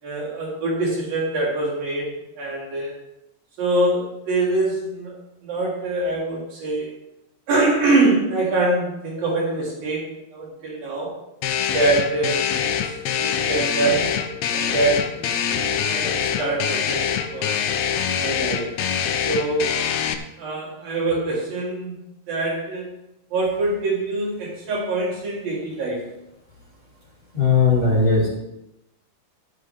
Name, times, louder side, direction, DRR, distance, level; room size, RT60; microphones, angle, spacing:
voice 1, 0.0-2.9 3.6-6.9 7.5-11.1 11.7-14.2 14.5-17.6 18.2-18.8 19.3-19.7 20.4-22.0 22.3-22.9 23.3-26.0, right 2 dB, 75° right, -5 dB, 5.5 m, -24 dB
sound 1, 11.4-20.1, left 8 dB, 80° left, 1.6 m, -24 dB
voice 2, 27.3-28.3, left 4 dB, 15° left, -9 dB, 2.4 m, -17 dB
14.0 x 8.3 x 3.7 m, 0.89 s
omnidirectional pair, 4.1 m